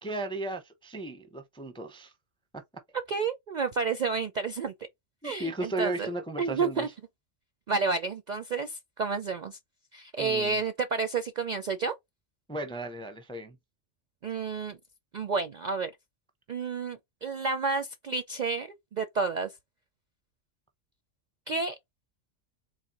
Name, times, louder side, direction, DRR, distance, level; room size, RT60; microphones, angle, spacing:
voice 1, 0.0-2.1 2.5-2.6 5.2-6.9 10.2-10.6 12.5-13.6, right 2 dB, 5° left, 0.4 m, -35 dB
voice 2, 3.1-4.7 5.2-6.1 6.4-6.9 7.7-9.6 9.9-11.9 14.2-14.8 15.1-15.9 16.5-19.5 21.5-21.8, right 4 dB, 55° right, 0.5 m, -30 dB
4.0 x 3.1 x 2.9 m
omnidirectional pair, 1.3 m